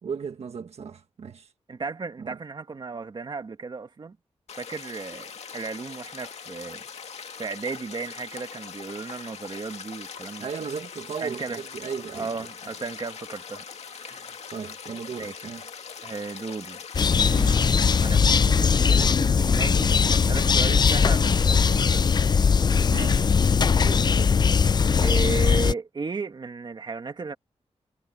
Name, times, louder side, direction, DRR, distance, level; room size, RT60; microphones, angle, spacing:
voice 1, 0.0-1.5 2.2-2.4 10.4-12.3 14.5-15.6 22.8-23.3 23.7-24.2, right 6 dB, 70° right, 1.4 m, -36 dB
voice 2, 1.7-4.2 4.6-6.8 7.4-10.5 11.2-11.6 12.1-14.4 15.2-15.4 16.0-16.8 17.1-17.6 18.0-22.3 24.2-24.3 25.0-27.3, right 4 dB, 45° right, 2.1 m, -35 dB
sound 1, 4.5-18.2, left 6 dB, 75° left, 2.1 m, -41 dB
sound 2, 16.9-25.7, left 6 dB, 40° left, 0.4 m, -20 dB
wide cardioid pair, 135°, 11 cm